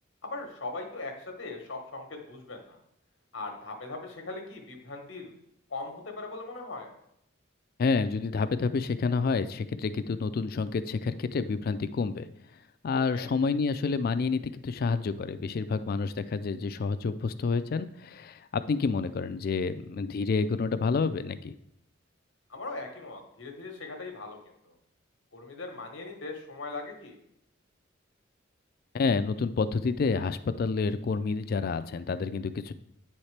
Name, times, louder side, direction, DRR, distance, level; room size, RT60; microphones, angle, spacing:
voice 1, 0.2-2.8 3.3-5.3 5.7-6.9 13.1-13.3 22.5-24.4 24.6-24.7 25.3-27.2, left 3 dB, 65° left, 3 dB, 1.1 m, -39 dB
voice 2, 7.8-12.3 12.8-21.5 28.9-32.7, left 4 dB, 50° left, 12 dB, 0.3 m, -29 dB
8.8 x 4.3 x 3.3 m, 0.76 s
head